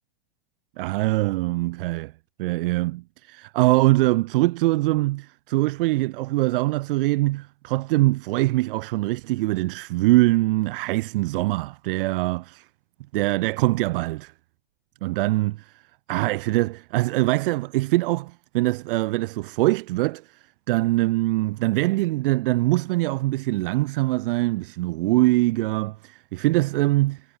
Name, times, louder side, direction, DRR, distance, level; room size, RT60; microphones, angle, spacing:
voice 1, 0.8-2.1 2.4-12.7 13.1-14.3 15.0-15.8 16.1-27.2, right 19 dB, 60° right, 1.1 m, -23 dB
hypercardioid pair, 125°, 31 cm